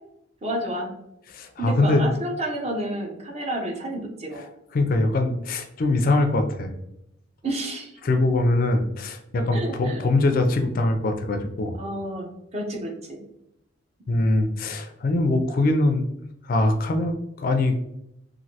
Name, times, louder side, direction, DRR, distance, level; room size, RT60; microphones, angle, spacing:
voice 1, 0.4-0.9 1.6-4.5 7.4-7.9 9.5-10.1 11.8-13.2 14.1-14.2, right 1 dB, 30° right, 0 dB, 0.6 m, -30 dB
voice 2, 1.3-2.1 4.7-6.7 8.0-11.8 14.1-16.1 16.4-17.8, left 2 dB, 45° left, 5 dB, 0.3 m, -22 dB
3.1 x 2.5 x 2.7 m, 0.81 s
head